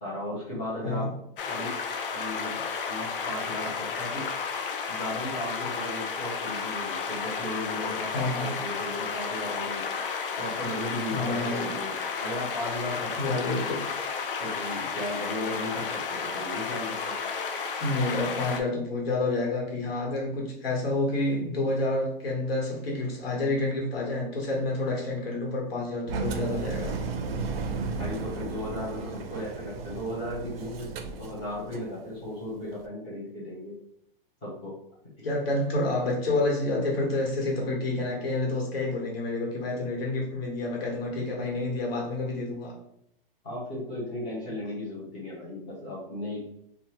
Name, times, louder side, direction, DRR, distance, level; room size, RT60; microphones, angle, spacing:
voice 1, 0.0-1.1 1.5-1.7 2.1-2.6 2.9-4.3 4.9-9.9 10.4-13.7 14.4-17.1 28.0-33.7 34.4-34.7 43.4-46.4, left 1 dB, 10° left, -8 dB, 0.4 m, -36 dB
sound 1, 1.4-18.6, left 5 dB, 65° left, 0.5 m, -32 dB
voice 2, 8.1-8.5 11.1-11.7 13.2-13.8 17.8-26.9 35.2-42.7, left 2 dB, 85° left, -1 dB, 1.3 m, -29 dB
Engine, 26.1-31.9, right 4 dB, 80° right, 0.5 m, -34 dB
2.8 x 2.2 x 2.9 m, 0.76 s
hypercardioid pair, 175°, 29 cm